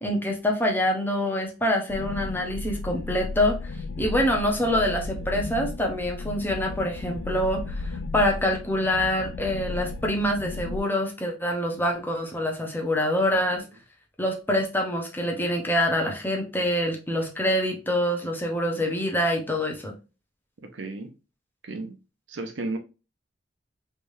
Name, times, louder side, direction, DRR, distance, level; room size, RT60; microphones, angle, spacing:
voice 1, 0.0-3.7 4.0-13.6 14.2-20.0, left 1 dB, 10° left, 0.8 m, -25 dB
sound 1, 1.9-10.8, left 3 dB, 70° left, 0.3 m, -34 dB
voice 2, 20.7-21.1 21.6-22.0 22.3-22.8, right 2 dB, 80° right, 0.7 m, -33 dB
3.4 x 3.2 x 2.6 m
head